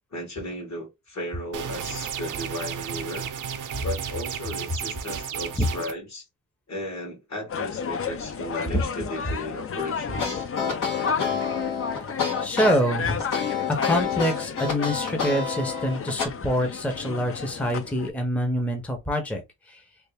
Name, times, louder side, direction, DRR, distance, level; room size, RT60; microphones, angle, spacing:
voice 1, 0.1-3.3 3.8-6.2 6.7-10.4, left 1 dB, 60° left, 1.8 m, -35 dB
sound 1, 1.5-5.9, right 8 dB, 75° right, 0.6 m, -33 dB
sound 2, 7.5-18.1, left 6 dB, 45° left, 0.5 m, -32 dB
sound 3, 10.1-16.3, left 6 dB, 85° left, 1.6 m, -28 dB
voice 2, 12.4-13.2 13.7-19.8, equal, 5° left, 0.6 m, -25 dB
3.3 x 2.5 x 3.4 m
wide cardioid pair, 140°, 31 cm